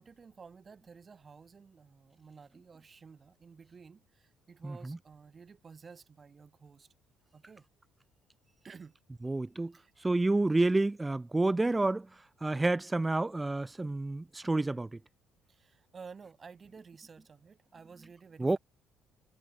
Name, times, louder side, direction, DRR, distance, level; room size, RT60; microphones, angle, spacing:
voice 1, 0.0-6.9 7.3-7.6 8.6-9.0 9.7-9.9 15.5-18.6, right 5 dB, 30° right, 7.1 m, -53 dB
voice 2, 4.6-5.0 9.2-9.7 10.0-12.1 12.4-15.0 18.4-18.6, right 2 dB, 15° right, 0.4 m, -29 dB
cardioid pair, 110°, 0 cm